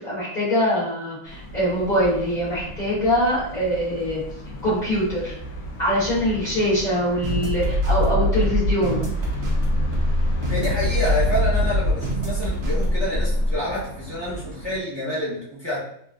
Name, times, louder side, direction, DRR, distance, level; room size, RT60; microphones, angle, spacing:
voice 1, 0.0-4.2 4.6-5.3 5.8-9.1, equal, 60° left, -10 dB, 0.4 m, -23 dB
sound 1, 1.3-14.8, equal, 80° left, 0.8 m, -34 dB
sound 2, 7.2-13.6, equal, 85° right, 0.5 m, -23 dB
voice 2, 10.5-15.8, left 1 dB, 20° left, -8 dB, 0.7 m, -28 dB
3.5 x 2.4 x 2.3 m, 0.67 s
omnidirectional pair, 2.3 m